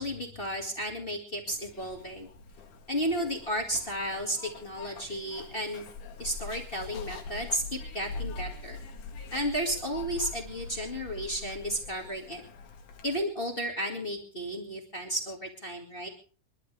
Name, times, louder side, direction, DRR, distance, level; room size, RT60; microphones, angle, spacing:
voice 1, 0.0-2.3 2.9-5.9 6.2-8.8 9.3-12.4 13.0-16.1, equal, 20° left, 2 dB, 1.8 m, -33 dB
Zipper (clothing), 1.5-13.2, left 4 dB, 75° left, 3.2 m, -43 dB
28.0 x 11.5 x 3.4 m, 0.40 s
omnidirectional pair, 3.6 m